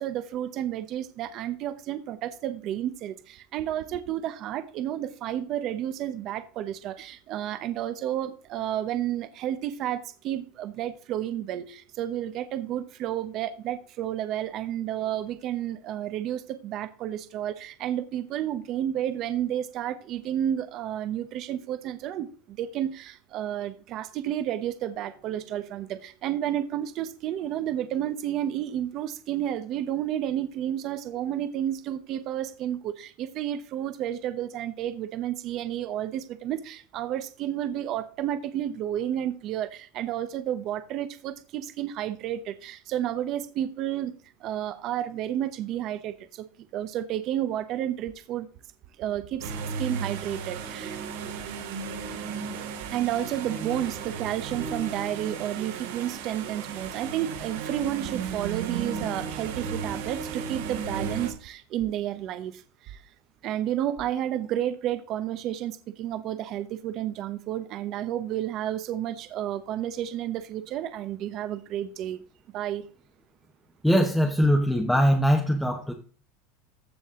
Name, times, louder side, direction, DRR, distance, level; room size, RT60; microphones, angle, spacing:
voice 1, 0.0-44.1 44.4-46.4 46.7-48.5 49.0-49.5 49.8-51.0 52.9-63.0 63.4-72.2 72.5-72.8, right 11 dB, 35° right, 0.9 m, -31 dB
sound 1, 49.4-61.3, right 6 dB, 90° right, 3.9 m, -35 dB
voice 2, 73.8-75.9, equal, ahead, 1.0 m, -21 dB
15.0 x 6.2 x 3.7 m
supercardioid pair, 175°, 0 cm